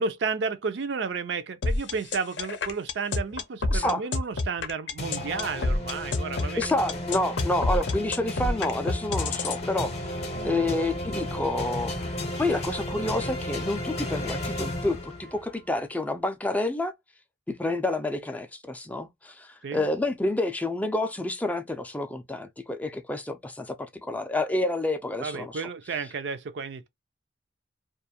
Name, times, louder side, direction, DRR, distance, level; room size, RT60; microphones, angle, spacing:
voice 1, 0.0-6.6 10.3-10.7 19.6-19.8 25.2-26.9, right 5 dB, 65° right, 0.4 m, -32 dB
sound 1, 1.6-9.6, left 3 dB, 75° left, 0.5 m, -28 dB
voice 2, 3.7-4.0 6.6-10.2 10.4-11.9 12.4-16.9 17.5-23.7 24.0-25.6, left 2 dB, 10° left, 0.3 m, -29 dB
sound 2, 5.0-15.6, left 1 dB, 35° left, 0.7 m, -34 dB
2.5 x 2.3 x 2.6 m
head